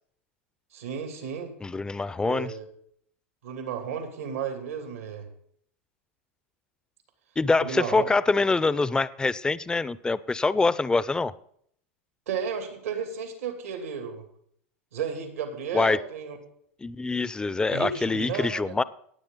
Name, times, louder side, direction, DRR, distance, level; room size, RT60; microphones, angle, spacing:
voice 1, 0.7-1.5 2.2-2.6 3.4-5.3 7.6-8.1 12.3-14.2 14.9-16.4 17.7-18.7, right 7 dB, 85° right, 5 dB, 2.7 m, -33 dB
voice 2, 1.6-2.5 7.4-11.3 15.7-16.0 16.8-18.8, left 3 dB, 10° left, 18 dB, 0.5 m, -25 dB
18.0 x 8.2 x 3.9 m, 0.66 s
hypercardioid pair, 105°, 7 cm